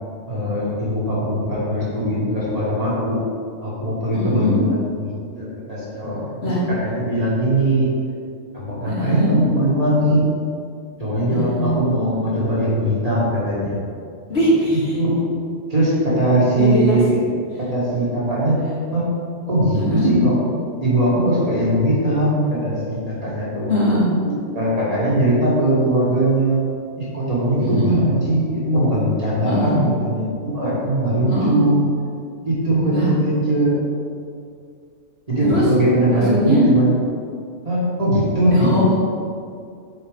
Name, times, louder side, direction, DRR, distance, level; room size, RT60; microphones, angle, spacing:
voice 1, 0.3-3.2 3.6-7.9 8.5-10.2 11.0-13.8 14.9-15.2 15.7-17.3 17.7-18.6 18.9-19.0 19.5-20.3 20.8-23.7 24.6-26.6 27.0-31.8 32.4-33.7 35.3-36.9 37.7-38.9, right 1 dB, 30° right, -8 dB, 1.8 m, -20 dB
voice 2, 4.1-4.5 6.4-6.6 8.9-9.3 11.3-11.7 14.3-14.8 16.6-17.0 19.7-20.1 23.7-24.1 27.6-28.0 29.4-29.8 31.3-31.6 32.9-33.1 35.4-35.6 36.1-36.6 38.5-39.0, equal, 55° left, -8 dB, 2.0 m, -20 dB
8.1 x 4.4 x 3.8 m, 2.3 s
omnidirectional pair, 1.3 m